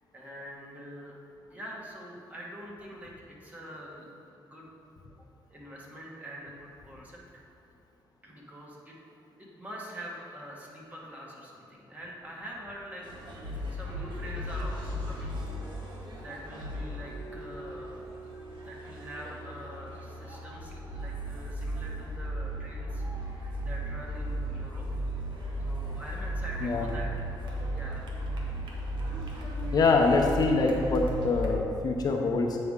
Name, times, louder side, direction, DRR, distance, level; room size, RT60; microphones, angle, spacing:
voice 1, 0.1-1.1 1.5-4.7 5.5-7.4 8.2-9.0 9.4-15.4 15.8-18.3 18.6-25.0 25.7-27.3 27.7-28.1, equal, 20° right, -4 dB, 1.4 m, -45 dB
sound 1, 13.0-31.5, right 1 dB, 70° right, 1.1 m, -36 dB
voice 2, 29.7-32.6, left 3 dB, 50° left, 1 dB, 0.6 m, -24 dB
8.0 x 5.2 x 3.6 m, 2.8 s
cardioid pair, 115°, 9 cm